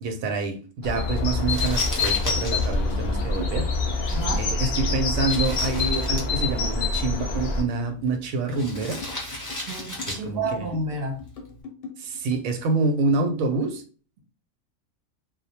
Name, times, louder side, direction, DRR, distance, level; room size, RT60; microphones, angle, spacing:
voice 1, 0.0-3.7 3.9-9.0 10.1-10.7 12.0-13.8, right 3 dB, 85° right, 1.0 m, -27 dB
sound 1, 0.8-7.6, left 3 dB, 85° left, 0.4 m, -25 dB
Crumpling crinkling, 1.4-11.6, left 1 dB, 25° left, 0.4 m, -38 dB
sound 2, 2.0-12.5, left 5 dB, 60° left, 0.7 m, -42 dB
voice 2, 4.1-4.4 9.6-11.2, right 2 dB, 55° right, 0.7 m, -30 dB
2.2 x 2.0 x 2.7 m
omnidirectional pair, 1.4 m